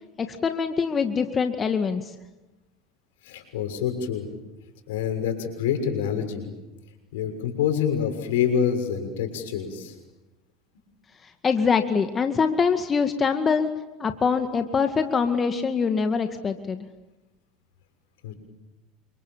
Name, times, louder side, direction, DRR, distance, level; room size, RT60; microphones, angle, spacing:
voice 1, 0.2-2.1 11.4-13.7 14.0-16.9, left 5 dB, 30° left, 7 dB, 2.1 m, -24 dB
voice 2, 3.2-4.3 4.9-6.5 7.1-10.0 18.2-18.3, left 8 dB, 80° left, 5 dB, 6.4 m, -26 dB
29.5 x 26.5 x 7.4 m, 1.1 s
hypercardioid pair, 85°, 0 cm